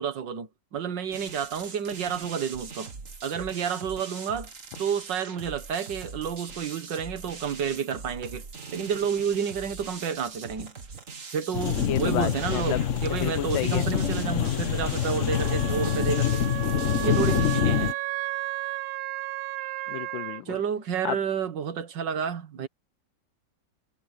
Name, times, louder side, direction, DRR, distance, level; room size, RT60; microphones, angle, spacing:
voice 1, 0.0-2.9 3.2-4.5 4.8-10.7 11.3-16.4 17.0-17.9 20.5-22.7, right 7 dB, 70° right, 2.1 m, -30 dB
sound 1, 1.1-17.6, right 4 dB, 45° right, 2.1 m, -42 dB
sound 2, 11.5-17.9, left 9 dB, 45° left, 1.2 m, -26 dB
voice 2, 11.9-12.8 13.1-13.9 19.9-20.6 21.0-21.2, left 13 dB, 80° left, 1.5 m, -31 dB
Wind instrument woodwind instrument, 15.3-20.4, right 19 dB, 85° right, 1.3 m, -33 dB
omnidirectional pair, 2.1 m